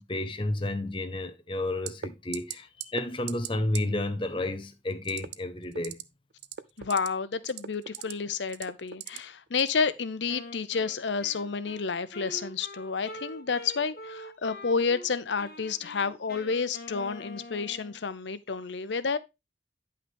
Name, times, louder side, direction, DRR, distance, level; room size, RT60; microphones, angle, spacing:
voice 1, 0.0-6.0, left 1 dB, 30° left, 1.0 m, -31 dB
sound 1, 1.9-2.1 2.3-2.5 2.8-3.0 3.3-3.5 3.7-3.8 5.0-5.3 5.7-6.0 6.4-7.1 7.4-8.1 8.5-9.2 9.6-9.8, right 9 dB, 65° right, 0.5 m, -37 dB
voice 2, 6.8-19.2, left 5 dB, 90° left, 0.7 m, -30 dB
Wind instrument woodwind instrument, 10.3-15.1 15.4-18.0, left 1 dB, 55° left, 1.8 m, -45 dB
9.5 x 5.7 x 3.5 m
head